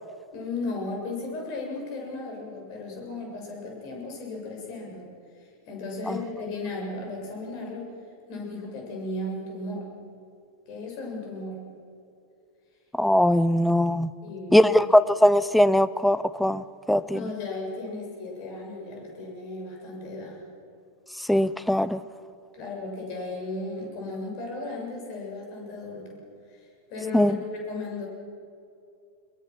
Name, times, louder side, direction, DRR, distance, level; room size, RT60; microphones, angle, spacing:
voice 1, 0.3-5.1 5.3-7.9 8.3-9.9 10.7-11.6 14.2-14.7 17.1-20.4 22.5-26.2 26.5-28.1, left 2 dB, 45° left, 0 dB, 6.9 m, -35 dB
voice 2, 13.0-14.1 14.5-17.2 21.3-22.0 27.1-27.4, left 1 dB, ahead, 16 dB, 0.6 m, -20 dB
22.0 x 21.5 x 6.1 m, 2.5 s
figure-of-eight pair, 90°, 0 cm